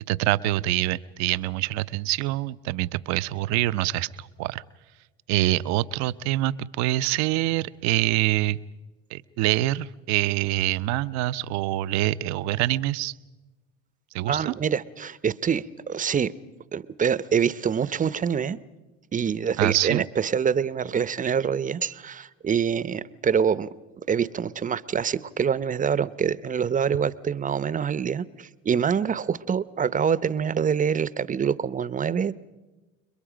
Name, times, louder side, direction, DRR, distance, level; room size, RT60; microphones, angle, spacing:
voice 1, 0.1-4.6 5.3-8.6 9.1-13.1 14.1-14.5 19.6-20.0, right 16 dB, 70° right, 15 dB, 0.7 m, -25 dB
voice 2, 14.3-16.3 16.7-18.6 19.1-23.7 24.1-32.3, right 7 dB, 25° right, 17 dB, 0.8 m, -25 dB
29.5 x 22.0 x 5.1 m, 1.1 s
supercardioid pair, 85°, 29 cm